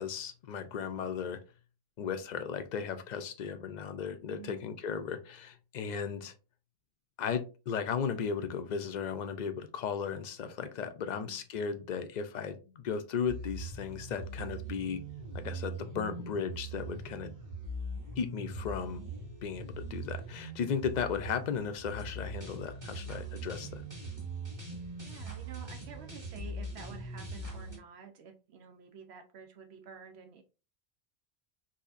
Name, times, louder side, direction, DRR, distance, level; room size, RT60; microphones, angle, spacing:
voice 1, 0.0-1.4 2.0-6.3 7.2-15.0 15.3-17.3 18.2-19.0 19.4-23.8, left 6 dB, 55° left, 9 dB, 0.5 m, -36 dB
voice 2, 4.3-4.7 11.2-11.4 25.0-30.4, right 6 dB, 85° right, 6 dB, 1.0 m, -50 dB
sound 1, 13.3-27.8, right 2 dB, 20° right, 1.0 m, -41 dB
4.1 x 2.7 x 2.4 m, 0.32 s
omnidirectional pair, 1.1 m